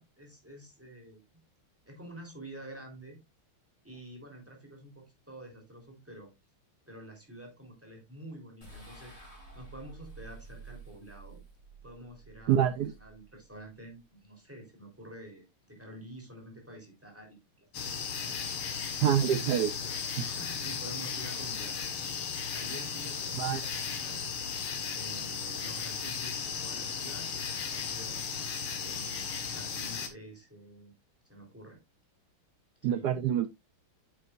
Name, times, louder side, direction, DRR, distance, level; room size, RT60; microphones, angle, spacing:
voice 1, 0.0-1.4 1.9-3.2 3.8-6.3 6.9-9.2 9.5-11.4 11.8-18.3 19.5-21.8 22.5-24.2 24.9-28.2 28.8-30.9 31.3-31.8 32.9-33.1, right 1 dB, 5° right, 3.6 m, -49 dB
sound 1, 8.6-14.0, right 4 dB, 30° left, 4.9 m, -51 dB
voice 2, 12.5-12.9 19.0-19.7 23.4-23.6 32.8-33.5, right 10 dB, 80° right, 0.9 m, -26 dB
sound 2, 17.7-30.1, left 6 dB, 70° left, 2.3 m, -36 dB
8.9 x 8.2 x 2.5 m
omnidirectional pair, 2.4 m